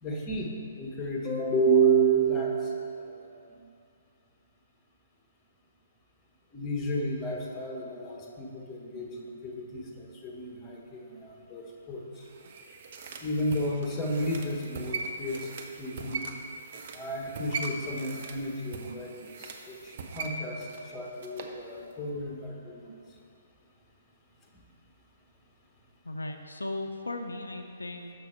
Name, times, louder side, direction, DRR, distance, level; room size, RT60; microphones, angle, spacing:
voice 1, 0.0-3.6 6.5-12.3 13.2-16.2 16.9-22.9 24.5-24.6, right 3 dB, 15° left, -1 dB, 1.0 m, -31 dB
sound 1, 12.2-21.6 21.9-22.0, right 4 dB, 45° right, 0.6 m, -40 dB
voice 2, 26.0-28.1, left 2 dB, 75° left, 5 dB, 0.4 m, -36 dB
6.8 x 5.9 x 4.3 m, 2.5 s
figure-of-eight pair, 125°, 0 cm